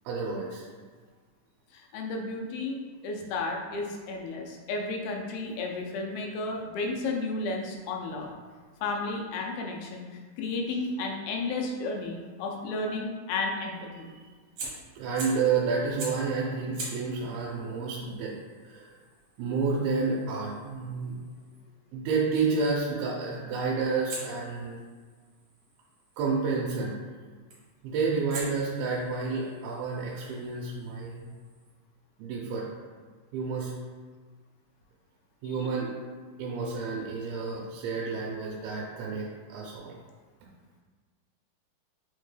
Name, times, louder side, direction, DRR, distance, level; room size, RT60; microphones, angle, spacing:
voice 1, 0.1-0.7 13.9-14.2 15.0-18.3 18.6-18.9 19.4-21.1 21.9-24.8 26.2-27.0 27.8-31.3 32.2-32.7 33.3-33.7 35.4-35.9 36.4-40.0, right 4 dB, 90° right, -3 dB, 2.4 m, -30 dB
voice 2, 1.7-8.3 8.8-10.1 10.4-14.1, left 3 dB, 90° left, 1 dB, 2.5 m, -33 dB
Fire, 14.6-15.5 16.0-16.3 16.7-21.6 24.1-26.2 27.5-27.8 28.3-31.7, right 3 dB, 75° right, 1.4 m, -45 dB
5.9 x 2.2 x 3.1 m, 1.5 s
omnidirectional pair, 4.2 m